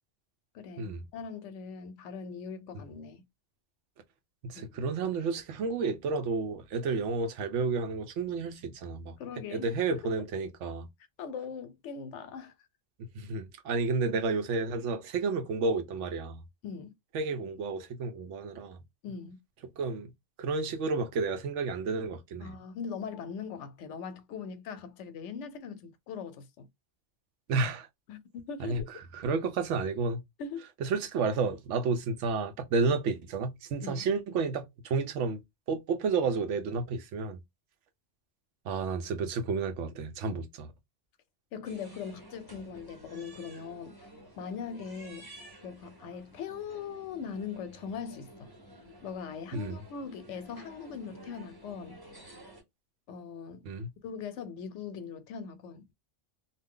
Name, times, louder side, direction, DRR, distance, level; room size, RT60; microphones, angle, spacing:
voice 1, 0.5-3.2 4.5-4.7 9.2-10.0 11.2-12.5 16.6-16.9 19.0-19.4 22.4-26.7 28.1-28.8 30.4-30.7 33.8-34.1 41.5-44.0 44.4-45.3 45.6-48.5 49.0-52.0 53.1-53.6 54.0-55.9, left 6 dB, 80° left, 0.9 m, -40 dB
voice 2, 4.4-9.2 9.5-10.9 13.1-16.4 17.1-18.8 19.8-20.1 20.4-22.5 27.5-27.9 28.6-30.2 30.8-35.4 35.7-37.4 38.6-40.7 49.5-49.8 53.6-53.9, right 4 dB, 90° right, 0.9 m, -31 dB
sound 1, 41.6-52.6, right 1 dB, 25° right, 0.7 m, -52 dB
2.6 x 2.1 x 3.6 m
omnidirectional pair, 1.2 m